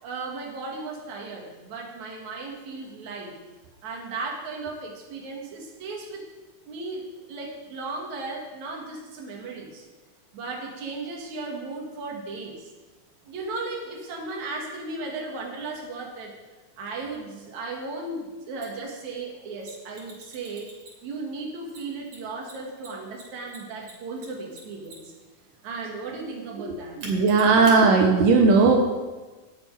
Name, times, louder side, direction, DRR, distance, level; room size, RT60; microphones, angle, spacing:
voice 1, 0.0-3.4 3.8-6.2 6.7-9.8 10.3-12.7 13.2-16.4 16.8-20.7 21.0-25.1 25.6-27.0, right 3 dB, 60° right, 0 dB, 3.2 m, -36 dB
Mechanisms, 18.6-18.7 19.6-21.2 21.7-25.2 27.0-27.8, right 2 dB, 45° right, 3.4 m, -43 dB
voice 2, 27.0-28.8, right 4 dB, 85° right, 2 dB, 2.7 m, -17 dB
8.4 x 8.0 x 9.1 m, 1.2 s
omnidirectional pair, 3.8 m